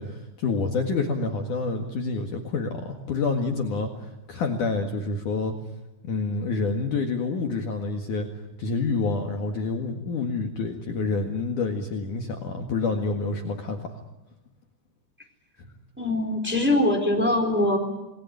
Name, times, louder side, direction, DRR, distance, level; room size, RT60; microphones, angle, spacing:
voice 1, 0.0-5.6 6.0-8.3 8.6-13.9 15.6-15.7, left 3 dB, 55° left, 4 dB, 3.0 m, -28 dB
voice 2, 16.0-17.8, left 1 dB, 5° right, 3 dB, 3.7 m, -22 dB
28.5 x 20.0 x 9.3 m, 0.98 s
omnidirectional pair, 4.8 m